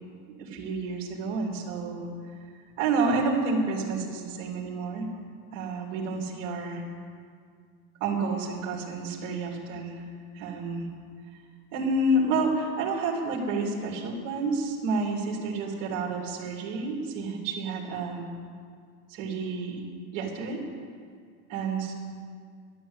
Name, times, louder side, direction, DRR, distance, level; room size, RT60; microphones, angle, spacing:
voice 1, 0.4-2.1 2.8-5.1 5.5-6.8 8.0-10.0 10.3-10.9 11.7-18.3 19.1-19.8 20.1-20.6 21.5-21.9, right 3 dB, 50° right, -3 dB, 3.0 m, -29 dB
12.5 x 11.5 x 8.2 m, 2.1 s
supercardioid pair, 150°, 37 cm